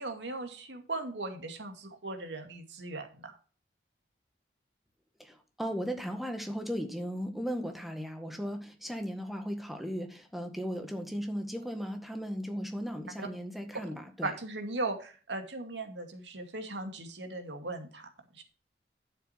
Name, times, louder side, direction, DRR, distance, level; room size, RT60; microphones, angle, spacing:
voice 1, 0.0-3.3 13.2-13.3 14.2-18.1 18.3-18.4, right 2 dB, 85° right, 5 dB, 2.3 m, -38 dB
voice 2, 5.2-14.3, equal, ahead, 5 dB, 1.7 m, -36 dB
12.0 x 7.0 x 4.5 m, 0.37 s
head